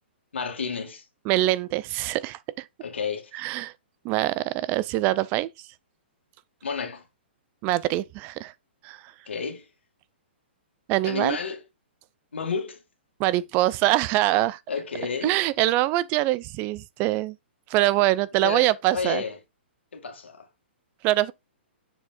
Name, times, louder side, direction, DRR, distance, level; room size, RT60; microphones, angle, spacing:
voice 1, 0.3-1.0 2.8-3.2 6.6-7.0 9.3-9.6 11.0-11.6 12.3-12.8 14.7-15.3 18.4-19.4 19.9-20.5, left 5 dB, 90° left, 2.0 m, -31 dB
voice 2, 1.3-2.7 3.3-3.7 4.0-5.5 7.6-8.5 8.8-9.0 10.9-11.4 13.2-14.6 15.2-17.4 17.7-19.2 21.0-21.3, right 16 dB, 30° right, 0.3 m, -24 dB
6.9 x 5.5 x 2.5 m
hypercardioid pair, 140°, 6 cm